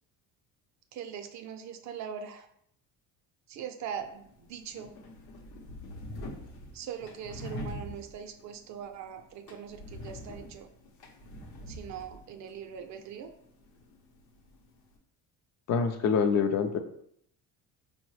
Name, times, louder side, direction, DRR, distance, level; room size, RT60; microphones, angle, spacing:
voice 1, 0.9-2.5 3.5-5.0 6.7-10.7 11.7-13.3, right 8 dB, 55° right, 7 dB, 0.4 m, -41 dB
sound 1, 3.9-15.0, left 1 dB, 85° left, 0.8 m, -45 dB
voice 2, 15.7-16.8, left 6 dB, 50° left, 7 dB, 0.4 m, -25 dB
4.6 x 2.1 x 3.1 m, 0.70 s
cardioid pair, 130°, 35 cm